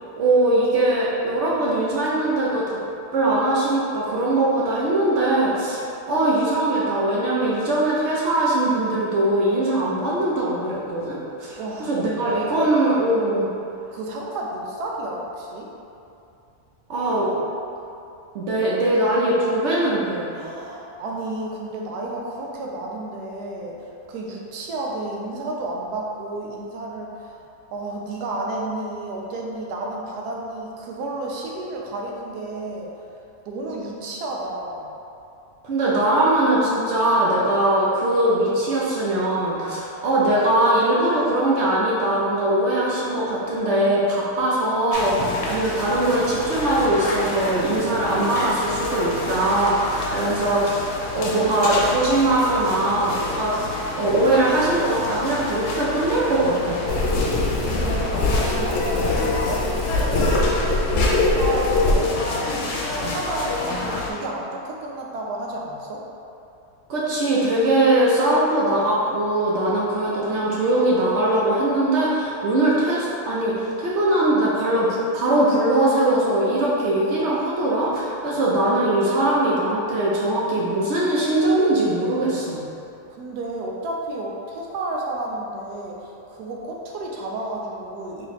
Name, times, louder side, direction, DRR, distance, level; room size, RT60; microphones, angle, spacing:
voice 1, 0.2-2.8 3.1-13.5 16.9-17.3 18.3-20.3 35.6-56.8 66.9-82.6, right 1 dB, 60° right, -6 dB, 0.7 m, -21 dB
voice 2, 11.6-12.6 13.9-15.7 20.3-27.4 27.7-32.9 33.4-34.9 57.6-66.0 83.1-88.3, right 2 dB, 85° right, -2 dB, 1.2 m, -31 dB
sound 1, 44.9-64.1, left 2 dB, 90° left, 1.2 m, -29 dB
sound 2, 56.9-61.9, left 2 dB, 65° left, 0.8 m, -22 dB
3.2 x 2.9 x 4.0 m, 2.7 s
omnidirectional pair, 1.7 m